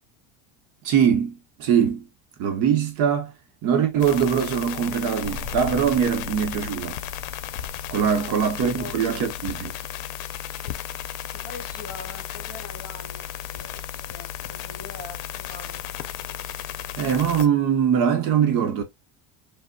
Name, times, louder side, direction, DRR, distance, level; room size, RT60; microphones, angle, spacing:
voice 1, 0.8-2.1 2.4-3.3 3.6-7.0 7.9-9.7 17.0-18.8, right 8 dB, 50° right, 0.7 m, -22 dB
sound 1, 4.0-17.5, left 11 dB, 80° left, 0.6 m, -34 dB
sound 2, 5.2-9.5, left 3 dB, 20° right, 1.4 m, -40 dB
voice 2, 8.7-9.3 10.6-10.8 11.3-16.3, left 3 dB, 25° left, 1.4 m, -43 dB
4.9 x 2.0 x 2.2 m
cardioid pair, 170°, 38 cm